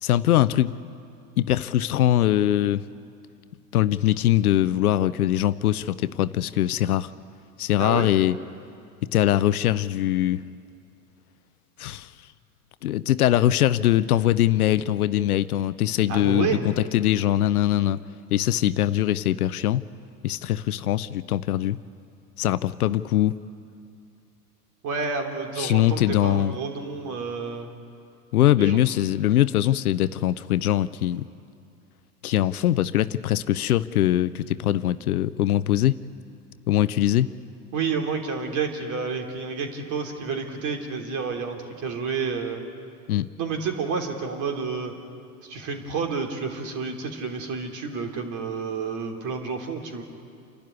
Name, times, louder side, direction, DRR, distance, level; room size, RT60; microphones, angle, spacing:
voice 1, 0.0-0.7 1.4-2.8 3.7-7.1 7.6-8.3 9.1-10.4 11.8-12.1 12.8-18.0 18.3-19.8 20.2-21.8 22.4-23.4 25.6-26.5 28.3-31.2 32.2-36.0 36.7-37.3 43.1-43.3, left 13 dB, 65° left, 16 dB, 0.7 m, -22 dB
voice 2, 16.1-16.6 24.8-27.7 28.6-28.8 37.7-42.6 43.4-44.9 45.4-50.0, right 5 dB, 40° right, 3 dB, 3.3 m, -30 dB
28.5 x 12.0 x 9.6 m, 2.4 s
figure-of-eight pair, 85°, 47 cm